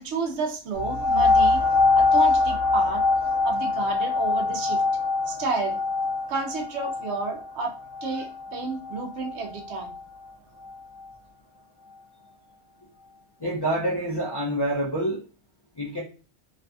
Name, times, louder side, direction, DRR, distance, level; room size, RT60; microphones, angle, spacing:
voice 1, 0.0-1.6 1.9-3.0 3.4-4.8 5.3-5.8 6.3-7.7 8.0-9.9, right 4 dB, 80° right, 4 dB, 0.9 m, -31 dB
sound 1, 0.7-10.0 10.6-10.7, left 3 dB, 30° right, 1.1 m, -24 dB
voice 2, 13.4-15.2 15.8-16.0, right 1 dB, 45° left, -6 dB, 0.3 m, -27 dB
2.6 x 2.5 x 2.2 m, 0.35 s
omnidirectional pair, 1.1 m